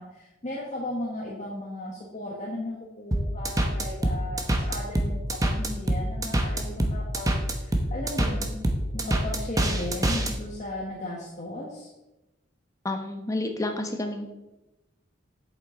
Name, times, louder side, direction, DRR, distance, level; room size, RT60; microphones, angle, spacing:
voice 1, 0.0-8.6 8.9-11.9, left 1 dB, 35° left, -4 dB, 1.3 m, -36 dB
sound 1, 3.1-10.3, right 1 dB, 15° right, 0.9 m, -25 dB
voice 2, 12.8-14.3, left 2 dB, 15° left, 4 dB, 0.9 m, -30 dB
8.0 x 7.9 x 4.4 m, 0.99 s
head